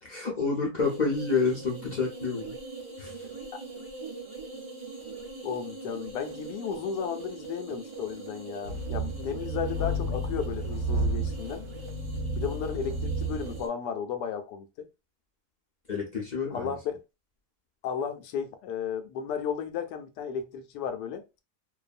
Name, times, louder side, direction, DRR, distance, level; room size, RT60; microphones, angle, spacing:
voice 1, 0.0-2.5 3.0-3.3 15.9-16.7, left 4 dB, 50° left, 0.5 m, -29 dB
sound 1, 0.8-13.7, right 3 dB, 40° right, 0.4 m, -43 dB
voice 2, 5.4-11.7 12.4-14.9 16.5-17.0 17.8-21.2, left 7 dB, 90° left, 1.2 m, -34 dB
sound 2, 8.6-13.6, right 2 dB, 75° right, 1.1 m, -31 dB
2.7 x 2.3 x 2.4 m
omnidirectional pair, 1.7 m